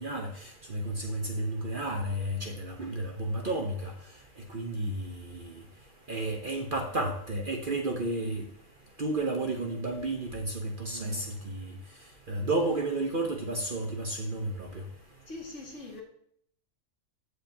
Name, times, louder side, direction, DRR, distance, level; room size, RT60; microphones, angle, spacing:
voice 1, 0.7-3.7 4.5-5.0 6.1-8.4 9.0-10.5 10.8-11.2 11.5-11.7 12.3-14.5, right 2 dB, 40° right, 3 dB, 1.0 m, -31 dB
voice 2, 15.3-16.0, left 2 dB, 55° left, -1 dB, 2.5 m, -42 dB
14.5 x 5.0 x 2.8 m, 0.68 s
omnidirectional pair, 1.5 m